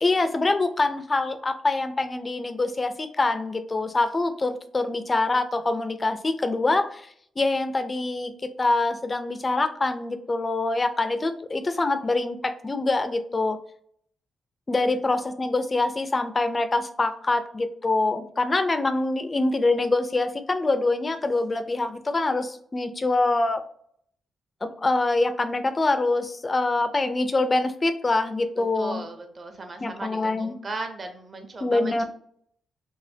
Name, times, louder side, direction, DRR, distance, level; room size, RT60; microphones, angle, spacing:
voice 1, 0.0-7.1 7.4-13.6 14.7-23.6 24.6-29.0 29.8-30.5 31.6-32.0, left 2 dB, 25° left, 9 dB, 0.4 m, -25 dB
voice 2, 28.8-32.0, right 2 dB, 35° right, 6 dB, 0.7 m, -37 dB
4.0 x 2.2 x 2.7 m, 0.63 s
cardioid pair, 125°, 0 cm